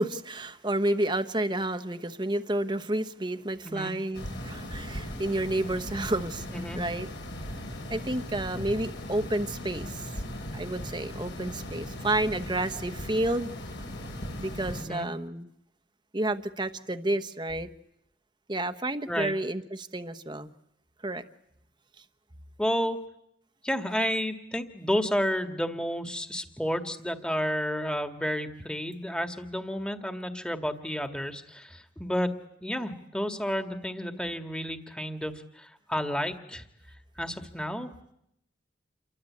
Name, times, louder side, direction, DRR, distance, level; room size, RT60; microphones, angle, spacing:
voice 1, 0.0-7.1 7.9-10.1 10.5-13.5 14.4-15.5 16.1-17.7 18.5-20.5 21.0-21.2, right 1 dB, 25° right, 10 dB, 1.1 m, -30 dB
sound 1, 4.1-14.8, left 1 dB, 70° left, 6.7 m, -38 dB
voice 2, 22.6-23.0 23.6-32.3 32.6-36.6 37.2-37.9, equal, 5° left, 6 dB, 1.8 m, -31 dB
28.5 x 23.5 x 8.6 m, 0.77 s
head